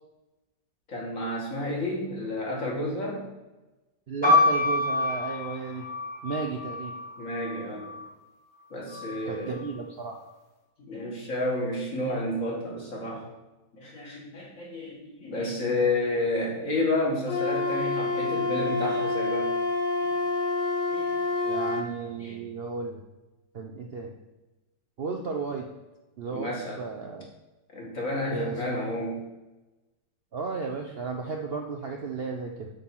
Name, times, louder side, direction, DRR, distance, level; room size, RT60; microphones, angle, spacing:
voice 1, 0.9-3.3 7.2-8.0 8.7-9.5 10.8-13.2 13.7-19.5 20.0-20.1 20.9-21.1 22.0-22.4 26.3-26.8 27.7-29.2, left 2 dB, 45° left, -2 dB, 2.2 m, -31 dB
voice 2, 4.1-5.9 6.2-6.9 9.3-10.2 21.4-23.0 23.5-24.1 25.0-25.7 26.2-26.5 26.8-27.3 28.3-28.9 30.3-32.7, right 5 dB, 85° right, 2 dB, 0.5 m, -34 dB
sound 1, 4.2-8.1 8.9-9.6, left 2 dB, 15° left, 1.6 m, -27 dB
Wind instrument woodwind instrument, 17.3-21.9, left 3 dB, 75° left, 1.8 m, -27 dB
7.8 x 4.2 x 6.0 m, 1.1 s
omnidirectional pair, 2.0 m